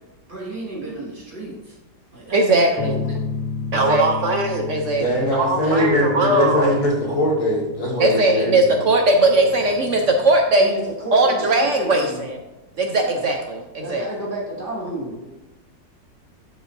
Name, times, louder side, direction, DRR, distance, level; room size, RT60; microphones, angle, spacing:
voice 1, 0.3-1.8 2.1-2.4 2.7-3.2 10.6-12.2 12.9-13.2 13.8-15.4, right 1 dB, 30° right, -6 dB, 2.4 m, -32 dB
voice 2, 2.3-3.0 3.7-6.7 8.0-10.7 11.1-12.4 12.8-14.0, right 2 dB, 65° right, 3 dB, 0.7 m, -19 dB
sound 1, 2.8-10.4, left 5 dB, 75° left, 1.3 m, -33 dB
voice 3, 5.0-8.8, left 1 dB, 60° left, -5 dB, 2.4 m, -21 dB
12.0 x 4.9 x 2.6 m, 1.0 s
omnidirectional pair, 1.9 m